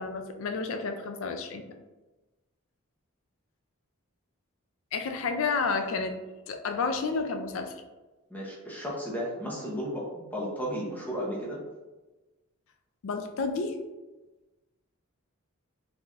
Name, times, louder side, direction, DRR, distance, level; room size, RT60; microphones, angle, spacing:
voice 1, 0.0-1.6 4.9-6.2 6.5-7.7 13.0-13.8, left 4 dB, 65° left, 6 dB, 0.4 m, -30 dB
voice 2, 8.3-10.0 10.3-11.6, equal, 10° left, -5 dB, 0.7 m, -34 dB
3.8 x 2.9 x 2.4 m, 1.1 s
head